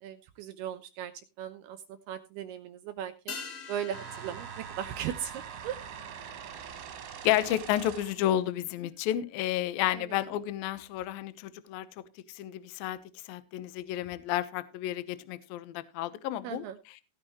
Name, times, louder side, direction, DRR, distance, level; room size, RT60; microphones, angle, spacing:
voice 1, 0.0-1.1 1.4-3.4 3.7-5.3 5.6-5.8 9.9-10.2 16.4-16.8, right 10 dB, 80° right, 9 dB, 2.3 m, -38 dB
sound 1, 3.3-8.3, left 5 dB, 50° left, 1.9 m, -47 dB
sound 2, 3.9-8.3, right 8 dB, 65° right, 4.0 m, -43 dB
voice 2, 7.2-11.9 12.3-13.0 13.3-17.0, left 12 dB, 80° left, 14 dB, 2.1 m, -31 dB
17.0 x 8.9 x 3.1 m, 0.29 s
omnidirectional pair, 5.6 m